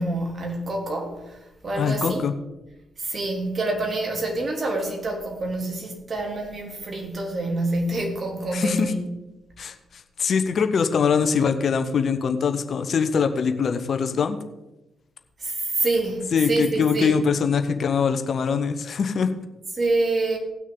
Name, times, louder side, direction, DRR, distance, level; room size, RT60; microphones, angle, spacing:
voice 1, 0.0-2.2 3.0-9.0 15.4-17.2 19.8-20.4, right 2 dB, 45° right, 2.9 m, -27 dB
voice 2, 1.8-2.3 8.5-8.9 9.6-14.4 16.3-19.3, left 6 dB, 55° left, 1.0 m, -23 dB
18.5 x 6.3 x 3.9 m
hypercardioid pair, 45°, 0 cm